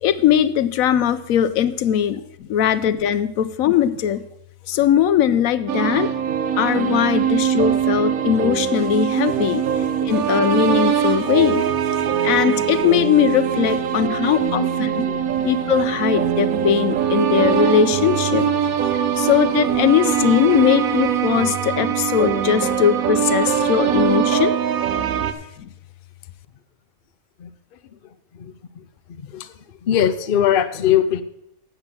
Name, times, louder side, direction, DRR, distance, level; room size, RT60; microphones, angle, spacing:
voice 1, 0.0-4.3 4.7-6.1 6.6-18.5 18.9-24.6 25.6-25.7, left 9 dB, 85° left, 12 dB, 1.0 m, -20 dB
sound 1, 5.7-25.3, right 8 dB, 85° right, 1.2 m, -22 dB
voice 2, 14.6-15.5 27.4-27.5 28.3-28.8 29.2-29.5 29.8-31.2, left 10 dB, 50° left, 10 dB, 0.7 m, -22 dB
8.2 x 6.9 x 7.3 m, 0.79 s
omnidirectional pair, 1.5 m